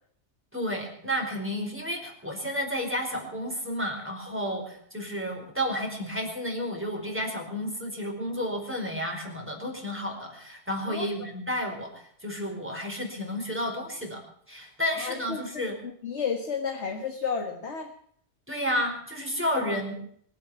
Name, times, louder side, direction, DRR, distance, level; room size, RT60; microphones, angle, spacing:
voice 1, 0.5-15.7 18.5-20.0, equal, 10° right, 0 dB, 4.7 m, -31 dB
voice 2, 14.9-17.9 19.6-19.8, left 6 dB, 70° left, 4 dB, 1.9 m, -32 dB
24.5 x 8.2 x 7.0 m, 0.62 s
omnidirectional pair, 1.2 m